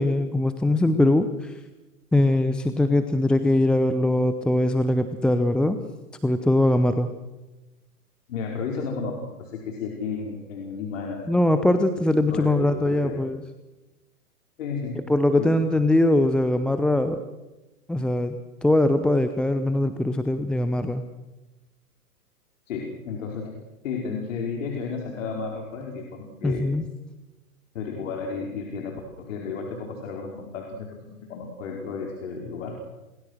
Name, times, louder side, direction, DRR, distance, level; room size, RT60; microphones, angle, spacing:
voice 1, 0.0-1.5 2.1-5.8 6.2-7.1 11.3-13.4 15.1-17.2 17.9-18.4 18.6-21.0 26.4-26.8, left 1 dB, ahead, 9 dB, 0.7 m, -21 dB
voice 2, 8.3-11.5 12.3-13.2 14.6-15.0 15.4-15.5 22.7-23.6 23.8-26.7 27.7-32.8, left 5 dB, 55° left, 0 dB, 4.9 m, -33 dB
30.0 x 21.0 x 6.4 m, 1.1 s
figure-of-eight pair, 115°, 46 cm